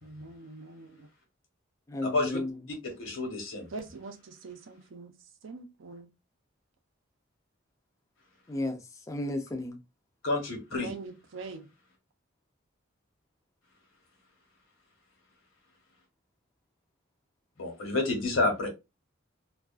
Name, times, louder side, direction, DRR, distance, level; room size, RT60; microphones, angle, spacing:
voice 1, 0.0-1.1 3.7-5.1 5.4-6.1 10.7-11.7 18.6-18.7, right 3 dB, 70° right, 0.5 m, -43 dB
voice 2, 1.9-2.6 8.5-9.8, left 2 dB, 15° left, 0.4 m, -33 dB
voice 3, 2.8-3.7 10.2-10.9 17.6-18.7, left 2 dB, 75° left, 1.0 m, -29 dB
2.3 x 2.3 x 2.3 m
head